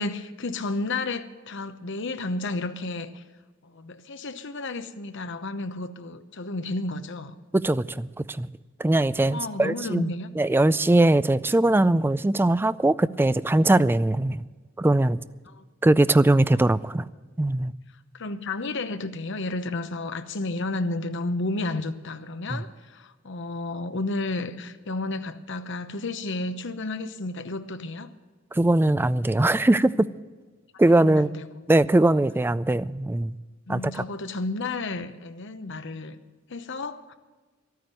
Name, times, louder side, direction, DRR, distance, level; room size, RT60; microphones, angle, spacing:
voice 1, 0.0-3.2 3.6-7.4 9.3-10.3 15.5-15.6 18.1-28.1 30.9-31.7 32.0-32.2 33.7-36.2 36.5-37.1, left 2 dB, 65° left, 0.9 m, -32 dB
voice 2, 7.5-8.5 8.8-10.1 10.4-14.4 14.8-15.2 15.8-17.0 17.4-17.7 22.5-22.6 28.5-30.1 30.8-31.3 31.7-33.3 33.7-34.0, right 2 dB, 10° right, 0.3 m, -21 dB
12.5 x 9.4 x 9.0 m
head